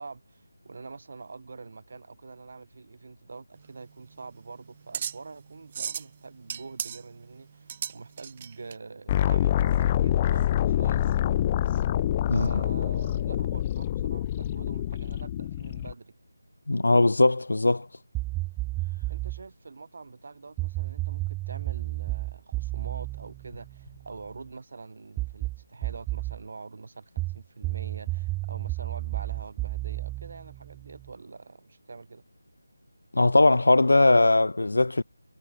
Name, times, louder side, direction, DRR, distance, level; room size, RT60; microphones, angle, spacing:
voice 1, 0.0-11.4 12.3-16.1 19.1-32.2, right 4 dB, 50° right, 3.9 m, -45 dB
sound 1, 3.6-8.7, right 8 dB, 25° right, 0.5 m, -37 dB
sound 2, 9.1-15.9, left 11 dB, 20° left, 0.7 m, -26 dB
voice 2, 16.7-17.9 33.1-35.0, left 2 dB, 75° left, 0.7 m, -20 dB
sound 3, 18.1-19.4 20.6-24.3 25.2-26.4 27.2-31.1, right 20 dB, 10° right, 0.9 m, -32 dB
figure-of-eight pair, 165°, 0 cm